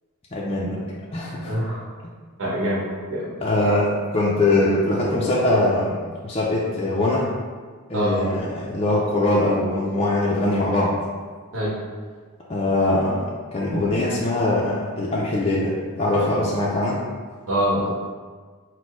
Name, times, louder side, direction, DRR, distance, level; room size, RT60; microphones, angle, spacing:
voice 1, 0.3-0.8 1.1-1.5 3.4-7.3 7.9-11.0 12.5-13.2 13.5-17.0, left 2 dB, 25° left, -5 dB, 0.4 m, -22 dB
voice 2, 1.5-1.8 2.4-2.8 3.1-3.3 7.9-8.1 11.5-11.7 17.5-17.9, equal, 60° right, -6 dB, 1.3 m, -24 dB
4.3 x 2.1 x 4.6 m, 1.5 s
head